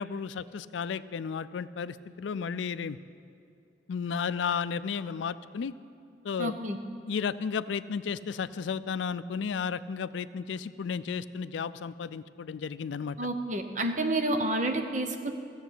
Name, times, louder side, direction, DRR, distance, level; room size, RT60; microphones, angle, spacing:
voice 1, 0.0-3.0 3.9-5.7 6.2-6.5 7.1-13.2, left 6 dB, 85° left, 15 dB, 0.4 m, -33 dB
voice 2, 6.4-6.8 13.2-15.3, right 1 dB, 45° right, 5 dB, 0.9 m, -29 dB
15.5 x 7.1 x 8.1 m, 2.5 s
head